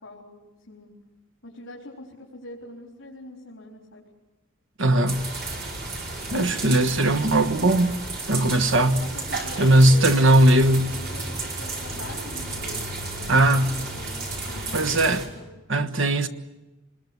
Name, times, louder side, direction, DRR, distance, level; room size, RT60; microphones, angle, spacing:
voice 1, 0.0-1.0 1.4-4.0 9.0-10.5 10.8-15.5, left 1 dB, 70° left, 4.0 m, -43 dB
voice 2, 4.8-5.3 6.3-8.0 8.3-9.0 9.6-11.0 13.3-13.7 14.7-15.2 15.7-16.3, right 1 dB, 75° right, 1.3 m, -19 dB
sound 1, 5.1-15.3, right 2 dB, 55° right, 5.4 m, -33 dB
26.0 x 21.0 x 8.0 m
head